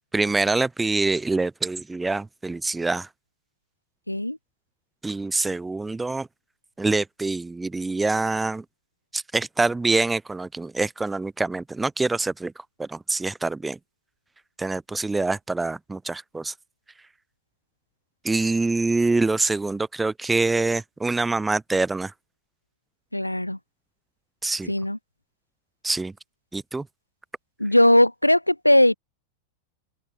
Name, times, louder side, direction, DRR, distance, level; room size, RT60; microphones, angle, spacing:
voice 1, 0.1-3.1 5.0-6.3 6.8-8.6 9.1-12.5 12.8-13.8 14.6-16.5 18.2-22.1 24.4-24.7 25.8-26.1 26.5-26.9, right 3 dB, 10° right, 3.4 m, -25 dB
voice 2, 4.1-4.4 23.1-23.6 24.7-25.0 27.6-28.9, left 1 dB, 85° left, 6.0 m, -19 dB
open air
figure-of-eight pair, 90°, 0 cm